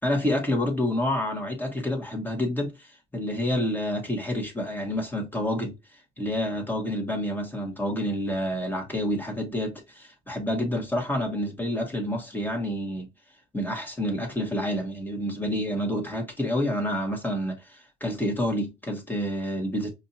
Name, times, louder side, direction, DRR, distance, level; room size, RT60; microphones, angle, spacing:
voice 1, 0.0-5.7 6.2-13.1 13.5-19.9, left 1 dB, 10° left, 1.9 m, -28 dB
5.1 x 2.9 x 2.8 m
cardioid pair, 90°, 20 cm